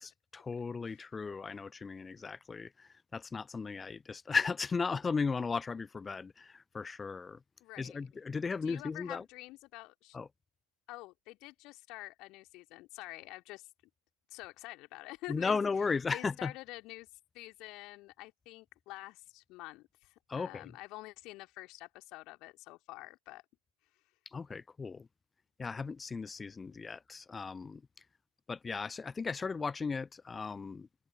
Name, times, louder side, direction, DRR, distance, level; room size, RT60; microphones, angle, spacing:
voice 1, 0.0-7.4 7.8-9.2 10.1-10.3 15.3-16.5 20.3-20.7 24.3-25.1 25.6-27.8 28.5-30.9, left 4 dB, 15° left, 0.3 m, -36 dB
voice 2, 7.6-8.0 8.6-10.2 10.9-13.7 14.3-15.6 16.1-17.1 17.3-23.4, left 20 dB, 40° left, 3.2 m, -48 dB
figure-of-eight pair, 85°, 0 cm